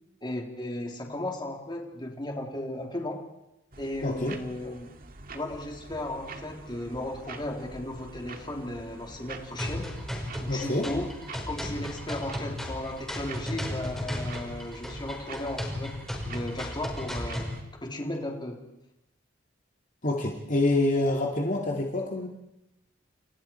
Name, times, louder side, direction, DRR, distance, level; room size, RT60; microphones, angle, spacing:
voice 1, 0.2-3.2 3.8-4.9 5.3-9.9 10.4-11.1 11.5-17.5 17.8-18.7, left 1 dB, 25° left, 1 dB, 3.4 m, -35 dB
sound 1, 3.7-17.6, right 3 dB, 50° right, 2.1 m, -45 dB
voice 2, 4.0-4.4 10.5-10.9 20.0-22.3, left 2 dB, 45° left, 0 dB, 2.6 m, -26 dB
sound 2, 9.6-17.6, left 1 dB, ahead, 4.9 m, -35 dB
30.0 x 28.5 x 4.6 m, 0.89 s
head